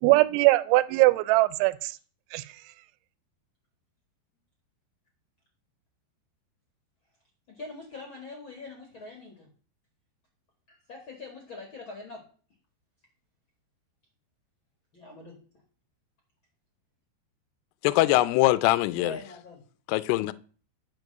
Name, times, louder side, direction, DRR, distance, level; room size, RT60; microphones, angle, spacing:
voice 1, 0.0-1.9 2.3-2.4, right 20 dB, 90° right, 16 dB, 3.0 m, -21 dB
voice 2, 7.5-9.5 10.7-12.3 14.9-15.4 18.9-19.6, left 3 dB, 55° left, 2 dB, 1.3 m, -43 dB
voice 3, 17.8-19.2 19.9-20.3, left 18 dB, 85° left, 16 dB, 2.3 m, -22 dB
11.0 x 5.0 x 6.6 m, 0.42 s
omnidirectional pair, 5.3 m